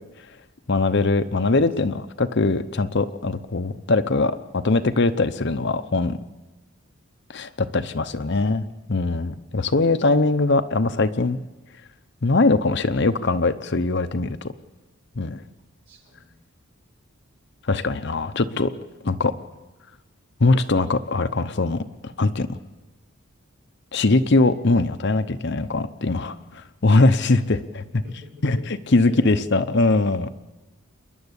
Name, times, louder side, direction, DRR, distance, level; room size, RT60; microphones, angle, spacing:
voice 1, 0.7-6.2 7.3-8.6 8.9-11.4 12.2-14.5 15.2-15.4 17.7-18.7 19.0-19.3 20.4-21.8 22.2-22.6 23.9-28.0 28.4-30.3, left 3 dB, 50° left, 9 dB, 0.7 m, -21 dB
voice 2, 1.6-2.0 8.2-8.5 15.9-16.3 27.8-28.5 29.0-29.6, left 2 dB, 50° right, 0 dB, 5.6 m, -48 dB
28.5 x 11.0 x 8.2 m, 1.1 s
head